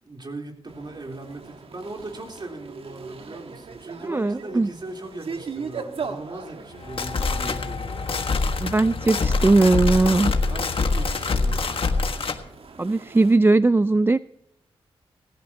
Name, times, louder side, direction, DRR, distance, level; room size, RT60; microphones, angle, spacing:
voice 1, 0.0-8.0 10.5-12.1, right 2 dB, 45° right, 2 dB, 3.6 m, -39 dB
sound 1, 0.7-13.4, right 5 dB, 65° right, 1.4 m, -40 dB
voice 2, 4.0-4.7 8.6-10.3 12.8-14.2, right 2 dB, 20° right, 15 dB, 0.4 m, -19 dB
sound 2, 6.7-12.4, left 4 dB, 60° left, 1.5 m, -25 dB
16.5 x 15.5 x 2.9 m, 0.82 s
cardioid pair, 50°, 10 cm